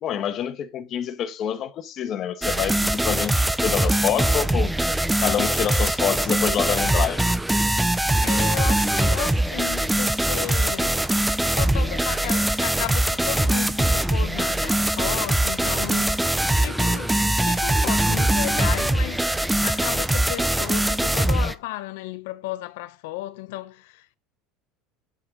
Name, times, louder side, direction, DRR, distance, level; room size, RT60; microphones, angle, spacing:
voice 1, 0.0-4.7 5.2-7.2, left 9 dB, 35° left, 1.2 m, -27 dB
sound 1, 2.4-21.5, right 1 dB, 5° right, 0.5 m, -22 dB
voice 2, 8.2-11.1 11.5-17.2 17.4-24.2, left 18 dB, 80° left, 0.6 m, -34 dB
8.1 x 7.8 x 3.7 m
cardioid pair, 170°, 0 cm